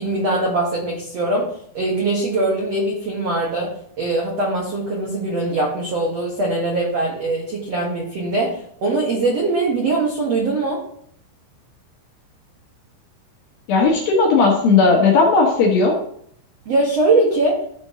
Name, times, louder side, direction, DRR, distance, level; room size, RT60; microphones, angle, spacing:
voice 1, 0.0-1.4 1.7-3.7 4.0-10.8 16.6-17.6, right 2 dB, 70° right, -3 dB, 1.5 m, -21 dB
voice 2, 13.7-16.0, left 4 dB, 65° left, -1 dB, 2.6 m, -15 dB
14.0 x 5.3 x 3.1 m, 0.65 s
omnidirectional pair, 5.4 m